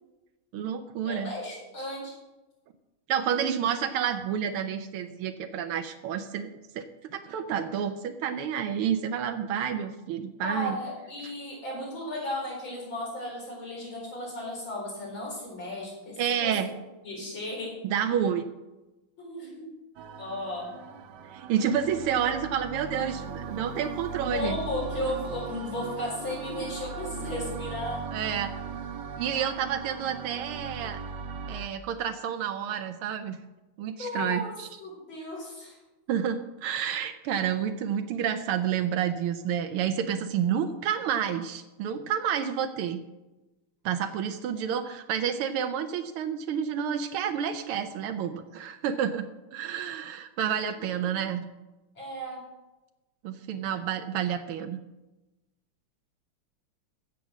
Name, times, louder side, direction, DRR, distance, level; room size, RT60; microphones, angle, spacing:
voice 1, 0.5-1.3 3.1-6.5 6.7-6.8 7.1-10.8 16.2-16.7 17.8-18.5 21.3-24.6 28.1-28.5 29.2-31.0 31.5-33.4 33.8-34.7 36.1-43.0 43.8-49.3 49.5-51.5 53.2-54.8, right 8 dB, 90° right, 7 dB, 1.7 m, -29 dB
voice 2, 1.0-2.1 10.4-16.7 17.0-17.7 19.2-19.7 20.2-20.7 24.3-28.0 33.8-34.5 34.8-35.8 50.7-51.2 52.0-52.4, left 1 dB, 65° left, -3 dB, 5.2 m, -35 dB
sound 1, 20.0-31.7, right 6 dB, 65° right, 1.3 m, -38 dB
15.5 x 7.2 x 6.2 m, 1.1 s
omnidirectional pair, 2.3 m